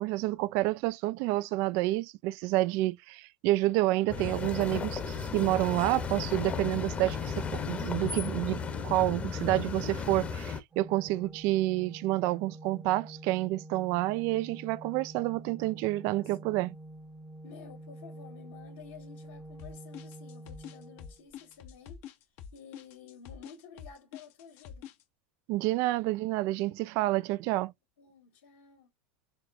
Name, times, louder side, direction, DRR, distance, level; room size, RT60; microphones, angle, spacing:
voice 1, 0.0-16.8 25.5-27.7, right 17 dB, 60° right, 0.3 m, -29 dB
sound 1, 4.1-10.6, left 5 dB, 25° left, 0.9 m, -34 dB
Organ, 10.7-21.6, right 1 dB, 20° right, 0.7 m, -48 dB
voice 2, 16.0-16.5 17.4-22.0 22.5-24.9 28.0-28.9, left 7 dB, 80° left, 2.0 m, -52 dB
sound 2, 19.6-25.0, left 9 dB, 55° left, 0.8 m, -46 dB
4.5 x 3.1 x 2.7 m
hypercardioid pair, 105°, 5 cm